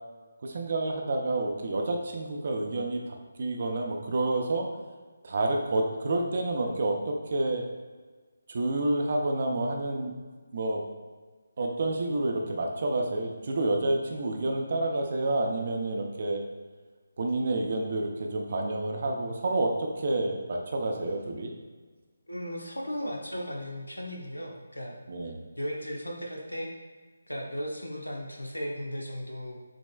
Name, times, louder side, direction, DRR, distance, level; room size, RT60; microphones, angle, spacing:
voice 1, 0.4-4.7 5.2-7.6 8.5-10.2 10.5-10.8 11.6-16.4 17.2-21.5 25.1-25.4, right 2 dB, 45° right, 2 dB, 0.6 m, -29 dB
voice 2, 22.3-25.1 25.6-26.7 27.3-29.6, equal, 85° left, 0 dB, 0.8 m, -36 dB
6.1 x 3.1 x 2.2 m, 1.4 s
figure-of-eight pair, 150°, 0 cm